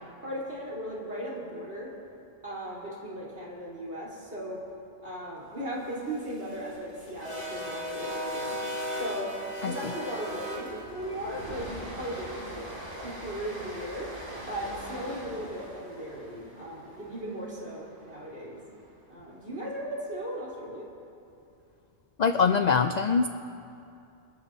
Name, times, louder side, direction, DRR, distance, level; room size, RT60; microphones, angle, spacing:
voice 1, 0.2-1.9 2.4-4.6 5.0-8.5 8.9-9.3 9.6-12.7 13.0-14.1 14.5-18.6 19.1-20.9, equal, 60° right, -6 dB, 3.9 m, -37 dB
sound 1, 5.9-18.1, equal, 40° right, 4.3 m, -39 dB
voice 2, 22.2-23.3, left 5 dB, 70° left, 8 dB, 0.4 m, -23 dB
27.0 x 13.5 x 2.7 m, 2.6 s
omnidirectional pair, 1.3 m